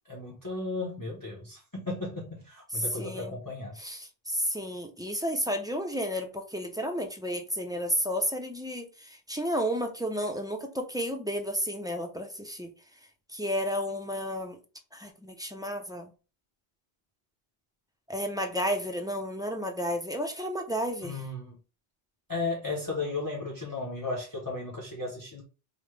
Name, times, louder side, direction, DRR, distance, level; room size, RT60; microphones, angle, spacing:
voice 1, 0.0-3.8 21.0-21.6 22.3-25.4, left 3 dB, 20° left, 0.8 m, -35 dB
voice 2, 2.7-3.3 3.8-12.7 13.3-14.6 14.9-16.1 18.1-21.2, equal, 5° right, 0.4 m, -32 dB
5.1 x 2.1 x 3.2 m
omnidirectional pair, 1.1 m